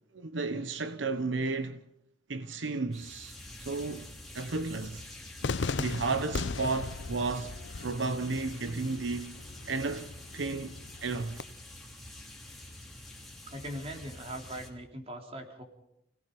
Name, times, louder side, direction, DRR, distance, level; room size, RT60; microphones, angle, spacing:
voice 1, 0.1-1.8 2.3-3.4 3.6-4.1 4.3-5.0 5.8-9.3 9.7-11.4, right 3 dB, 80° right, 1.0 m, -33 dB
sound 1, 2.9-14.7, left 1 dB, ahead, 3.4 m, -47 dB
Cheering / Fireworks, 5.4-11.4, left 4 dB, 70° left, 0.7 m, -38 dB
voice 2, 13.5-15.6, right 1 dB, 35° right, 3.6 m, -40 dB
28.5 x 18.0 x 5.4 m
head